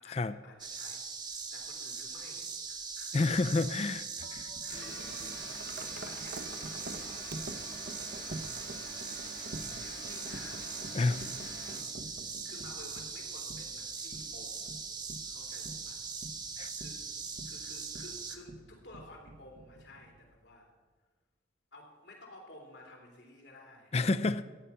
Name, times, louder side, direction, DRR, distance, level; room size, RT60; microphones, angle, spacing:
voice 1, 0.0-3.8 4.6-5.4 5.7-7.3 8.0-8.4 9.8-10.9 11.2-11.7 12.0-14.7 15.2-16.0 16.8-17.1 17.4-20.7 21.7-24.1, left 2 dB, 85° left, 3.3 m, -54 dB
sound 1, 0.6-18.4, right 5 dB, 25° right, 1.0 m, -41 dB
voice 2, 3.1-4.5 10.9-11.3 16.6-16.7 23.9-24.4, left 3 dB, 35° left, 0.4 m, -29 dB
Wind chime, 4.2-20.4, right 2 dB, 65° right, 0.8 m, -48 dB
sound 2, 4.7-11.8, left 3 dB, 70° left, 1.5 m, -49 dB
14.5 x 9.3 x 5.7 m
head